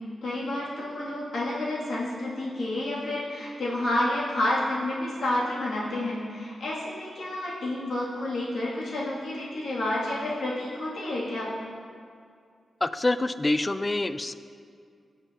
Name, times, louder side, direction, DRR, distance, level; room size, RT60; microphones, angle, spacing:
voice 1, 0.2-11.5, left 1 dB, 80° left, -6 dB, 2.6 m, -30 dB
voice 2, 12.8-14.3, left 2 dB, 25° left, 12 dB, 0.4 m, -26 dB
17.5 x 7.0 x 2.9 m, 2.2 s
cardioid pair, 75°, 0 cm